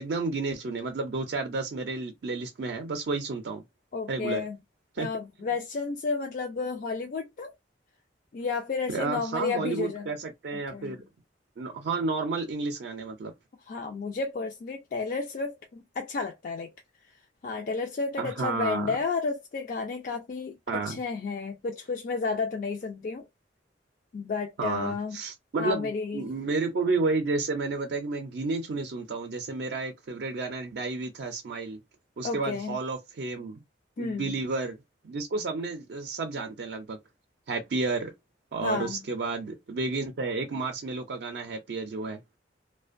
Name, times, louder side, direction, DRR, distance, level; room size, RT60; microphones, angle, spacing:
voice 1, 0.0-3.6 4.1-4.4 4.9-5.1 8.9-11.0 11.6-13.3 18.2-19.0 20.7-21.0 24.6-31.8 32.2-33.6 34.0-34.8 35.0-37.0 37.5-38.1 38.5-42.2, right 3 dB, 60° right, 0.4 m, -31 dB
voice 2, 3.9-4.6 5.0-7.5 8.3-10.1 10.7-11.0 13.7-16.7 17.4-23.2 24.1-25.2 25.6-26.2 32.2-32.8 34.0-34.4 38.6-39.0, left 4 dB, 45° left, 0.3 m, -32 dB
2.4 x 2.1 x 2.5 m
head